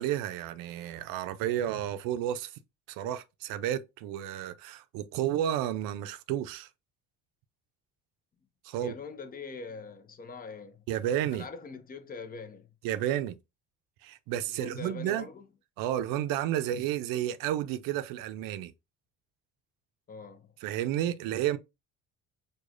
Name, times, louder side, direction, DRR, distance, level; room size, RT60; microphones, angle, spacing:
voice 1, 0.0-2.5 2.9-6.7 8.6-8.9 10.9-11.5 12.8-13.4 14.0-15.3 15.8-18.7 20.6-21.6, right 11 dB, 85° right, 0.5 m, -31 dB
voice 2, 8.7-10.8 11.3-12.7 14.5-15.5 20.1-20.5, left 4 dB, 25° left, 0.6 m, -43 dB
4.7 x 2.3 x 2.5 m
cardioid pair, 105°, 33 cm